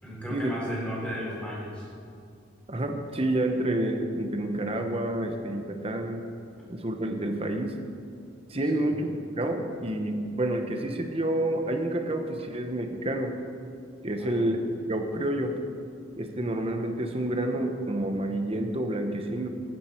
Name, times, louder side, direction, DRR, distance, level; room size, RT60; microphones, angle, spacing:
voice 1, 0.0-1.9 8.7-8.9 14.2-14.5, equal, 5° left, -6 dB, 3.7 m, -35 dB
voice 2, 2.7-6.3 6.7-7.8 8.5-9.1 9.4-13.4 14.0-14.6 14.9-15.6 16.2-19.5, right 1 dB, 30° right, 5 dB, 1.0 m, -29 dB
14.5 x 9.5 x 4.5 m, 2.4 s
head